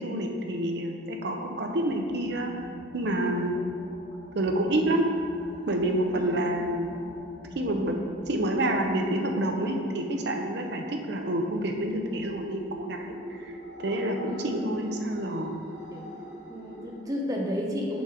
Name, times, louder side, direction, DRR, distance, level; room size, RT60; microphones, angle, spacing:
voice 1, 0.0-2.5 2.9-3.6 4.3-5.1 5.7-6.9 7.6-13.4 13.8-15.5, right 1 dB, 60° right, 3 dB, 0.7 m, -28 dB
sound 1, 1.5-17.0, equal, 40° left, 1.5 m, -44 dB
voice 2, 6.1-6.6 14.3-14.9 15.9-16.1 16.5-18.0, left 1 dB, 20° right, -1 dB, 0.8 m, -33 dB
6.8 x 5.0 x 3.8 m, 2.2 s
head